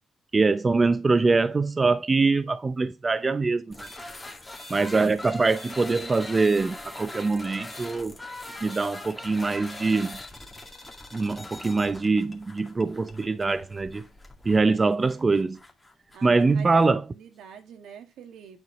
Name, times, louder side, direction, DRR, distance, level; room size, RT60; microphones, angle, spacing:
voice 1, 0.3-3.9 4.7-8.2 8.6-10.2 11.1-14.1 14.5-15.6 16.2-17.1, right 3 dB, 30° right, 0.6 m, -23 dB
sound 1, 3.7-16.9, left 2 dB, 15° left, 2.2 m, -42 dB
voice 2, 16.1-16.8 17.2-18.6, right 8 dB, 80° right, 1.9 m, -46 dB
9.7 x 4.7 x 5.1 m
cardioid pair, 90°, 0 cm